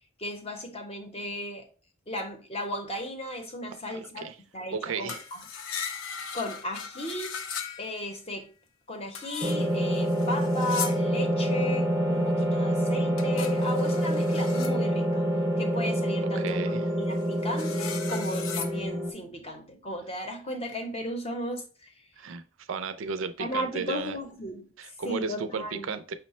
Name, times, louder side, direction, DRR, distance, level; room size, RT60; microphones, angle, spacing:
voice 1, 0.2-1.7 2.1-4.3 4.5-5.4 6.3-7.4 7.8-8.5 8.9-15.2 15.6-21.6 23.4-24.7 25.0-25.9, left 1 dB, 30° left, 0.8 m, -35 dB
voice 2, 3.7-4.4 4.7-5.2 5.5-5.6 16.2-16.8 22.2-22.4 22.7-24.2 24.8-26.1, right 5 dB, 70° right, 0.4 m, -34 dB
sound 1, 5.1-8.2 9.1-11.2 13.2-14.8 16.5-16.6 17.1-18.8, left 7 dB, 80° left, 0.5 m, -38 dB
sound 2, 9.4-19.1, equal, 15° right, 0.6 m, -27 dB
5.6 x 2.1 x 4.1 m
head